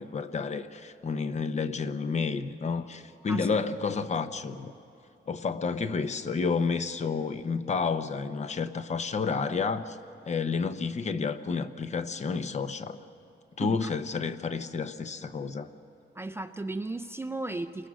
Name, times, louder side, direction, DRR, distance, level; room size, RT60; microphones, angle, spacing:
voice 1, 0.0-4.7 5.3-10.0 10.3-13.0 13.6-15.7, left 5 dB, 40° left, 10 dB, 0.8 m, -30 dB
voice 2, 13.6-13.9 16.1-17.9, right 2 dB, 15° right, 9 dB, 0.4 m, -35 dB
29.0 x 22.0 x 6.3 m, 2.8 s
wide cardioid pair, 175°, 19 cm